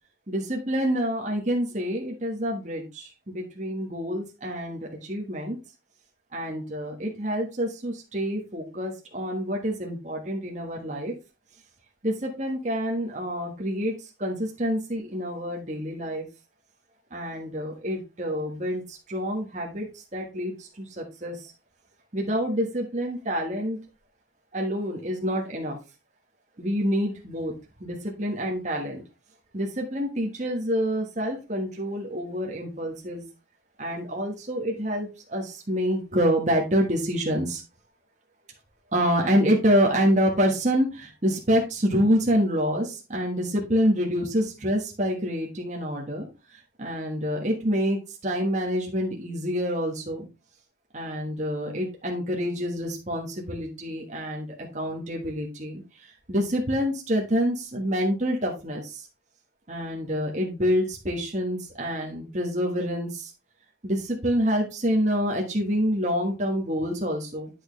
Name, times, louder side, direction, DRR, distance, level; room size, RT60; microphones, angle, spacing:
voice 1, 0.3-5.6 6.3-11.1 12.0-13.9 14.2-16.3 17.1-21.5 22.1-23.8 24.5-25.8 26.6-27.5 27.8-29.0 29.5-33.2 33.8-37.6 38.9-50.3 50.9-54.5 54.7-59.1 59.7-63.3 63.8-67.5, equal, 40° right, 0 dB, 1.4 m, -27 dB
8.4 x 6.3 x 3.2 m, 0.29 s
head